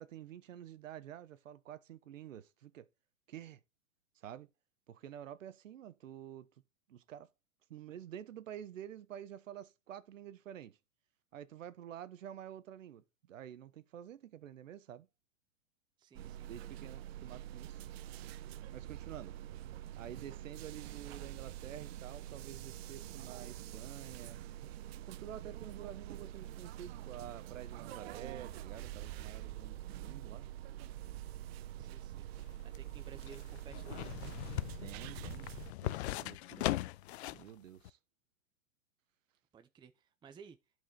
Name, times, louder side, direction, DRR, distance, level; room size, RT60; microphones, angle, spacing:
voice 1, 0.0-2.9 3.3-3.6 4.2-4.5 4.9-6.5 6.9-7.3 7.7-10.8 11.3-15.1 16.5-17.9 18.7-19.3 20.0-24.4 25.1-30.5 34.8-35.5 35.8-36.8 37.3-38.0, right 10 dB, 75° right, 1.2 m, -49 dB
voice 2, 16.0-17.0 31.8-32.3 32.8-34.1 39.5-40.6, right 6 dB, 10° right, 0.6 m, -56 dB
sound 1, 16.1-35.7, right 12 dB, 55° right, 0.8 m, -46 dB
sound 2, 32.4-37.5 37.8-37.9, left 16 dB, 55° left, 0.6 m, -39 dB
11.5 x 5.0 x 3.9 m
hypercardioid pair, 120°, 38 cm